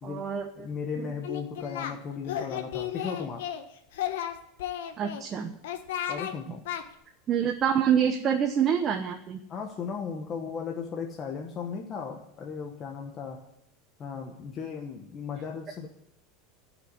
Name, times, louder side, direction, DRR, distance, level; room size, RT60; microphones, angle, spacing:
voice 1, 0.0-0.7 1.0-1.1 5.0-5.5 7.3-9.4, right 8 dB, 25° right, 4 dB, 0.9 m, -26 dB
voice 2, 0.6-3.5 6.1-6.6 9.5-13.4 14.0-15.9, left 6 dB, 25° left, 1 dB, 1.2 m, -36 dB
Singing, 1.2-1.9 2.2-3.6 3.9-5.2 5.6-6.3 6.6-6.8, left 10 dB, 90° left, 1.5 m, -33 dB
15.5 x 6.1 x 9.5 m, 0.77 s
supercardioid pair, 170°, 0 cm